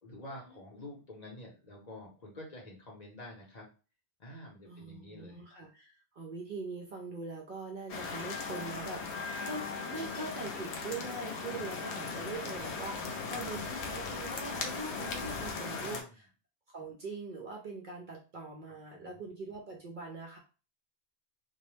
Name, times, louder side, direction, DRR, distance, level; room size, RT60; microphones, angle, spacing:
voice 1, 0.0-3.6 4.2-5.4 15.8-16.1 18.9-19.2, left 1 dB, 45° left, -2 dB, 0.8 m, -48 dB
voice 2, 4.7-16.3 16.7-20.4, right 3 dB, 55° right, 0 dB, 0.6 m, -42 dB
sound 1, 7.9-16.0, left 4 dB, 75° left, 0.8 m, -38 dB
2.2 x 2.0 x 3.1 m, 0.34 s
omnidirectional pair, 1.1 m